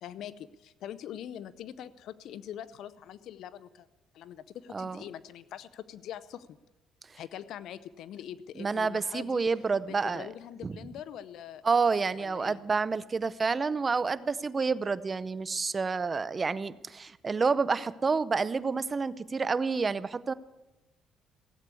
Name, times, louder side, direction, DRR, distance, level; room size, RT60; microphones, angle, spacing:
voice 1, 0.0-3.9 4.1-6.6 7.2-9.4 9.8-11.6 12.2-12.6, left 10 dB, 75° left, 16 dB, 0.6 m, -43 dB
voice 2, 4.7-5.0 7.1-7.2 8.6-10.3 10.6-10.8 11.6-20.3, right 4 dB, 30° right, 18 dB, 0.6 m, -29 dB
16.0 x 8.5 x 8.3 m, 1.1 s
cardioid pair, 80°, 0 cm